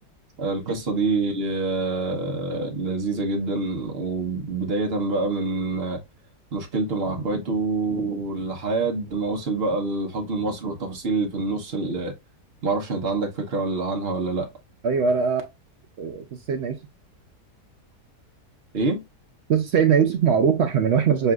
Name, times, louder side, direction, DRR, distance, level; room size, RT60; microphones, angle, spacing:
voice 1, 0.4-6.0 6.5-12.1 12.6-14.5 18.7-19.0, right 3 dB, 45° right, 1.0 m, -26 dB
voice 2, 14.8-15.4 16.0-16.8 19.5-21.3, right 6 dB, 70° right, 0.6 m, -21 dB
6.6 x 2.5 x 2.3 m
omnidirectional pair, 1.7 m